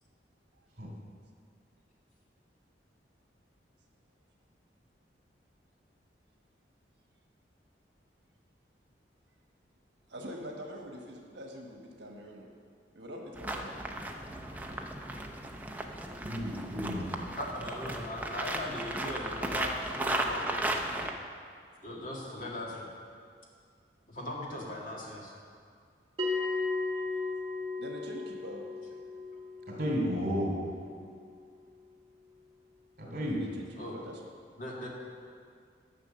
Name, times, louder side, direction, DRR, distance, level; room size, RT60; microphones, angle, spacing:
voice 1, 10.1-12.5 12.9-13.7 27.8-28.6 33.2-33.7 33.9-34.2, equal, 75° right, 1 dB, 1.3 m, -44 dB
sound 1, 13.3-21.1, right 1 dB, 10° right, 0.6 m, -35 dB
voice 2, 16.2-17.1 29.7-30.5 33.0-33.4, equal, 50° right, -2 dB, 2.8 m, -32 dB
voice 3, 16.9-21.1 21.8-22.9 24.1-25.3 33.8-34.0 34.6-34.9, left 1 dB, 45° left, -3 dB, 1.9 m, -39 dB
Bell, 26.2-31.2, left 3 dB, 30° right, 2.1 m, -36 dB
11.0 x 6.4 x 6.8 m, 2.2 s
head